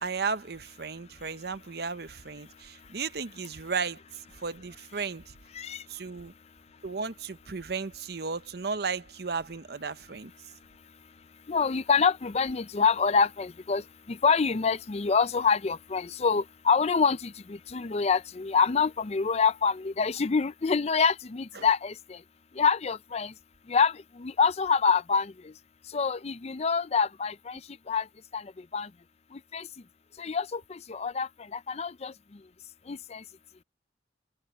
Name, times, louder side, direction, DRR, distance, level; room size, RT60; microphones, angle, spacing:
voice 1, 0.0-4.0 4.4-5.3 5.9-6.3 6.8-10.3 21.5-21.7, right 5 dB, 65° right, 0.8 m, -34 dB
voice 2, 11.5-13.8 14.1-22.2 22.6-23.3 23.7-23.9 24.2-25.3 25.9-27.6 27.9-28.1 28.3-28.4 28.7-28.9 29.5-29.7 30.2-32.1 32.9-33.2, left 5 dB, 35° left, 0.5 m, -26 dB
open air
head